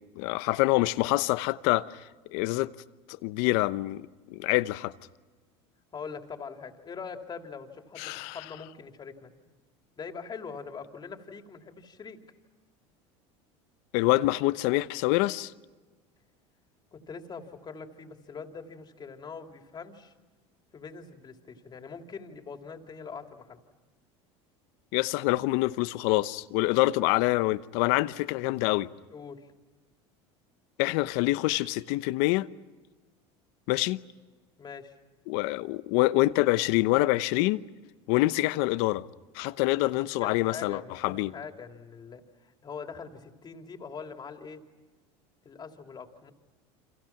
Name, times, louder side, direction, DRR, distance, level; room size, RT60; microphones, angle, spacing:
voice 1, 0.2-1.9 2.3-2.7 3.1-4.9 8.0-8.4 13.9-15.5 24.9-28.9 30.8-32.5 33.7-34.0 35.3-37.6 38.1-39.0 39.3-41.3, left 19 dB, 70° left, 0.9 m, -26 dB
voice 2, 5.9-9.3 10.0-12.2 16.9-20.1 20.7-23.6 29.1-29.5 34.6-34.9 39.8-44.6 45.4-46.3, left 5 dB, 30° left, 3.1 m, -43 dB
29.5 x 26.5 x 6.0 m
supercardioid pair, 100°, 15 cm